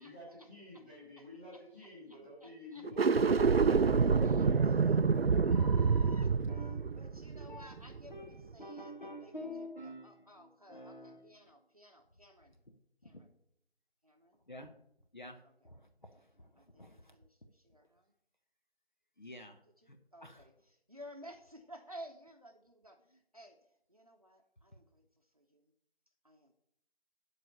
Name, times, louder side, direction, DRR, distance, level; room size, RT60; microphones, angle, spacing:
voice 1, 0.0-5.4, left 1 dB, 5° left, -13 dB, 2.6 m, -51 dB
voice 2, 2.4-3.4 4.2-4.7 5.5-6.3 7.0-9.3 9.8-12.5 13.0-13.3 14.0-14.4 16.6-16.9 17.1-18.1 20.1-20.5 20.9-23.5 23.9-25.0 25.3-25.6 26.2-26.5, right 1 dB, 35° right, 4 dB, 0.9 m, -54 dB
sound 1, 2.8-8.1, right 5 dB, 70° right, 0.5 m, -27 dB
voice 3, 5.1-5.5 6.0-7.8 8.1-11.5 12.7-12.8 13.0-13.2 14.5-14.7 15.1-17.2 19.2-19.6 19.9-20.4, left 1 dB, 50° left, 5 dB, 1.0 m, -49 dB
12.0 x 5.0 x 6.7 m, 0.74 s
figure-of-eight pair, 170°, 31 cm